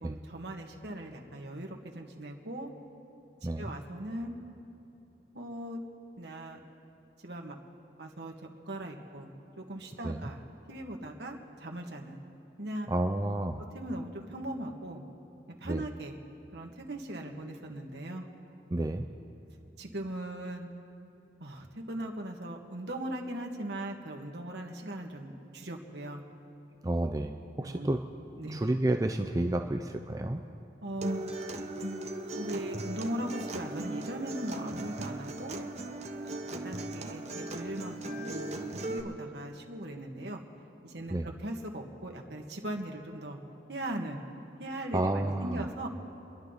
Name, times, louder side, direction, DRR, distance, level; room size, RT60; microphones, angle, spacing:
voice 1, 0.0-2.7 3.4-4.4 5.3-5.8 6.2-6.6 7.2-7.5 8.0-8.3 8.6-9.3 9.6-10.4 10.7-12.2 12.6-12.9 13.7-15.0 15.5-16.2 16.5-18.3 19.8-20.7 21.4-26.2 27.6-27.9 28.4-28.7 30.8-31.2 32.3-35.6 36.5-38.5 38.9-40.4 40.8-43.4 43.7-44.2 44.6-45.9, right 1 dB, 70° right, 1 dB, 1.6 m, -39 dB
voice 2, 12.9-13.6 15.6-15.8 18.7-19.1 26.8-28.0 28.5-30.4 41.1-41.3 44.9-45.7, right 1 dB, 20° right, 5 dB, 0.5 m, -30 dB
Acoustic guitar, 31.0-39.0, right 1 dB, 35° right, 0.9 m, -38 dB
30.0 x 11.5 x 4.0 m, 2.8 s
head